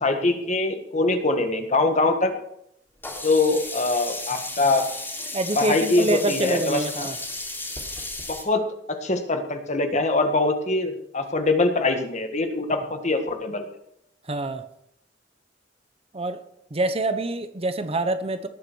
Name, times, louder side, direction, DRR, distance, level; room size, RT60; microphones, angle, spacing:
voice 1, 0.0-2.4 3.2-4.8 5.6-7.1 8.3-13.7, left 2 dB, 40° left, 6 dB, 1.7 m, -23 dB
Sink (filling or washing), 3.0-8.4, left 2 dB, 10° left, 3.8 m, -34 dB
voice 2, 5.3-7.2 14.3-14.6 16.1-16.4 16.7-18.5, right 2 dB, 35° right, 10 dB, 1.0 m, -26 dB
18.5 x 7.5 x 6.2 m, 0.76 s
head